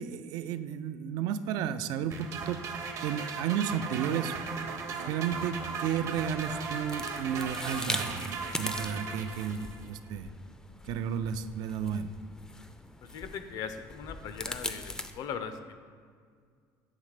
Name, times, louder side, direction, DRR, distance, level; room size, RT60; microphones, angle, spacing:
voice 1, 0.0-2.6 3.0-4.4 5.0-10.3 10.8-12.1, right 8 dB, 70° right, 11 dB, 0.3 m, -33 dB
sound 1, 2.1-9.9, right 5 dB, 50° right, 0.7 m, -37 dB
sound 2, 6.1-15.1, left 2 dB, 10° left, 0.4 m, -41 dB
voice 2, 13.1-15.8, left 7 dB, 65° left, 10 dB, 0.5 m, -39 dB
7.4 x 3.3 x 4.9 m, 2.1 s
cardioid pair, 115°, 7 cm